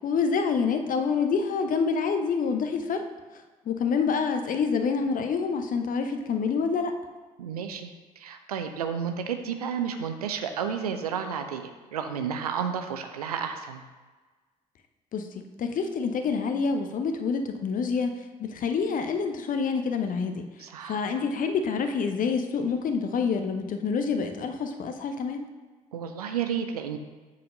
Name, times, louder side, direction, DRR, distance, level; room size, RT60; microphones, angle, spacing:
voice 1, 0.0-3.0 3.7-6.9 15.1-15.3 15.6-18.1 18.4-20.4 20.8-25.4, left 5 dB, 45° left, 6 dB, 0.8 m, -27 dB
voice 2, 7.4-13.8 20.6-21.0 25.9-27.0, right 7 dB, 80° right, 7 dB, 0.5 m, -32 dB
7.7 x 4.1 x 5.2 m, 1.3 s
figure-of-eight pair, 45°, 19 cm